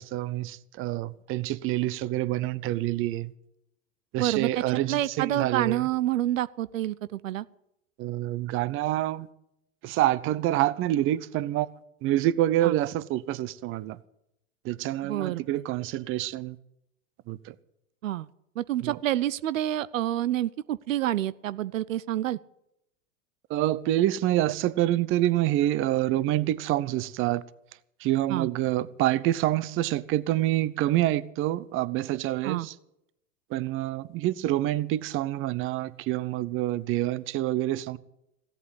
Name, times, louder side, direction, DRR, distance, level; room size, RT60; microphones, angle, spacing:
voice 1, 0.0-3.3 4.1-5.8 8.0-9.3 9.8-11.7 12.0-14.0 14.6-16.6 17.3-17.5 18.8-19.0 23.5-27.4 28.0-32.7 33.5-38.0, right 14 dB, 30° right, 0.7 m, -27 dB
voice 2, 4.2-7.5 12.6-12.8 15.0-15.6 18.0-18.3 18.6-22.4 28.3-28.5 32.4-32.7, right 13 dB, 80° right, 0.6 m, -28 dB
16.0 x 8.2 x 9.8 m
hypercardioid pair, 110°, 39 cm